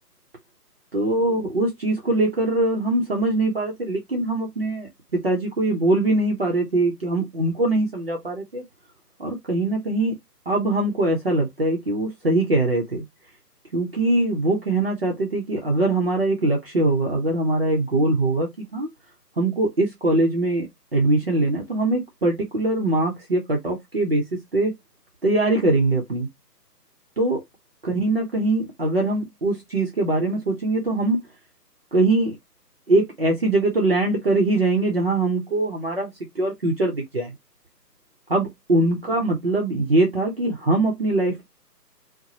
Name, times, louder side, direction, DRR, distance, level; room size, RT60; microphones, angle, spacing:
voice 1, 0.9-4.9 5.2-8.6 9.2-10.1 10.5-13.0 13.7-18.9 19.4-20.7 20.9-24.2 24.5-24.7 25.2-26.3 27.2-27.4 27.9-31.2 31.9-32.4 32.9-36.1 36.4-37.3 38.3-41.4, right 2 dB, 35° right, 0.7 m, -22 dB
2.7 x 2.2 x 2.8 m
figure-of-eight pair, 150°, 49 cm